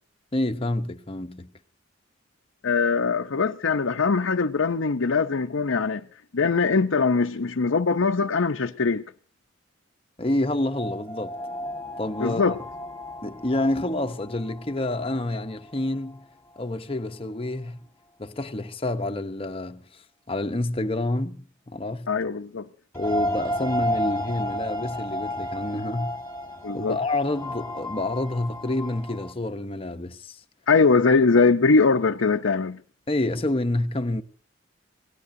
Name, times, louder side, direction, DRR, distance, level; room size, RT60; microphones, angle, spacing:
voice 1, 0.3-1.5 10.2-11.4 12.0-12.6 13.2-16.2 16.6-17.8 18.2-19.9 20.3-22.1 22.9-26.1 26.7-30.4 33.1-34.2, left 2 dB, 25° left, 0.9 m, -28 dB
voice 2, 2.6-6.0 6.3-9.0 12.2-12.6 22.1-22.7 26.6-27.0 30.7-32.8, left 4 dB, 75° left, 0.7 m, -21 dB
sound 1, 10.6-16.2 16.6-16.7 22.9-29.3, equal, 10° left, 1.6 m, -33 dB
27.5 x 18.5 x 2.7 m
head